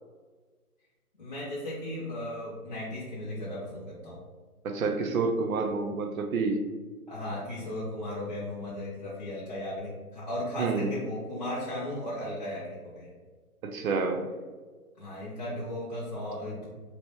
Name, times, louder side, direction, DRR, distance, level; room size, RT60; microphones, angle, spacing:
voice 1, 1.2-4.2 7.1-13.1 15.0-16.7, left 1 dB, 30° left, -9 dB, 0.5 m, -36 dB
voice 2, 4.6-6.6 10.6-10.9 13.6-14.3, right 4 dB, 65° right, 5 dB, 0.6 m, -28 dB
3.0 x 2.8 x 3.0 m, 1.4 s
hypercardioid pair, 155°, 45 cm